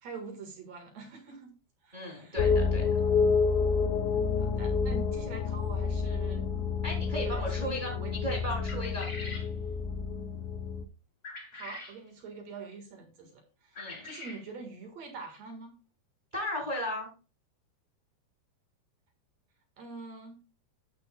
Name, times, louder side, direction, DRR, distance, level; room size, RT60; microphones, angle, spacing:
voice 1, 0.0-1.5 1.8-2.4 4.4-6.5 7.1-8.5 11.5-15.8 19.8-20.4, right 4 dB, 50° right, 4 dB, 2.3 m, -45 dB
voice 2, 1.9-3.0 6.8-9.4 13.8-14.0 16.3-17.1, equal, 15° right, 0 dB, 2.3 m, -36 dB
sound 1, 2.4-10.9, left 5 dB, 85° left, 3.2 m, -29 dB
sound 2, 8.7-9.5 11.2-12.0 13.7-14.4, left 2 dB, 65° left, 0.7 m, -43 dB
16.5 x 5.6 x 2.3 m, 0.32 s
omnidirectional pair, 5.0 m